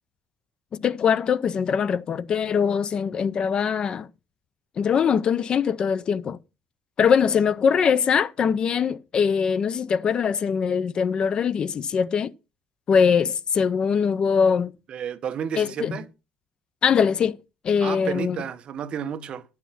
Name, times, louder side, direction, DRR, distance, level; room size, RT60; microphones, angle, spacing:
voice 1, 0.7-4.1 4.8-6.4 7.0-12.3 12.9-14.7 15.6-16.0 16.8-17.4 17.6-18.4, left 6 dB, 40° left, 0.6 m, -22 dB
voice 2, 14.9-16.1 17.8-19.4, right 8 dB, 45° right, 1.0 m, -31 dB
11.5 x 7.2 x 5.8 m
cardioid pair, 150°, 2 cm